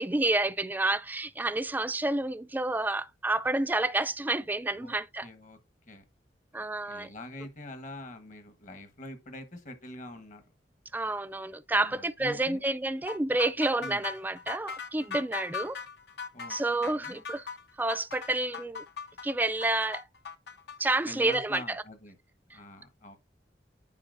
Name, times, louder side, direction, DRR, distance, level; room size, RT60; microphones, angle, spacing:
voice 1, 0.0-5.3 6.5-7.1 10.9-15.8 16.5-17.5 17.8-18.8 19.2-20.0 20.8-21.6, right 2 dB, 10° right, 0.3 m, -29 dB
voice 2, 4.8-5.6 5.9-6.0 6.5-10.4 11.7-12.6 13.8-14.0 16.3-16.6 16.8-17.2 21.0-22.2 22.5-23.2, left 1 dB, 45° left, 1.3 m, -45 dB
sound 1, 13.1-21.6, left 5 dB, 60° left, 0.7 m, -40 dB
9.7 x 4.7 x 2.6 m
head